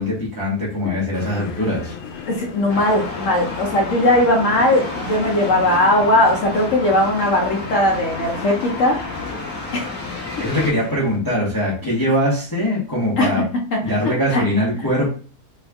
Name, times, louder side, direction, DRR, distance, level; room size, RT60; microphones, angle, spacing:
voice 1, 0.0-2.2 10.4-13.4 13.8-15.1, equal, 15° left, -5 dB, 0.8 m, -22 dB
sound 1, 1.1-11.2, left 7 dB, 85° left, 1.2 m, -36 dB
voice 2, 2.3-9.0 9.7-9.9 13.2-13.4 13.7-14.4, left 1 dB, 60° left, 1 dB, 0.9 m, -19 dB
sound 2, 2.7-10.7, left 2 dB, 10° right, 0.9 m, -31 dB
3.4 x 2.3 x 3.4 m, 0.38 s
omnidirectional pair, 1.8 m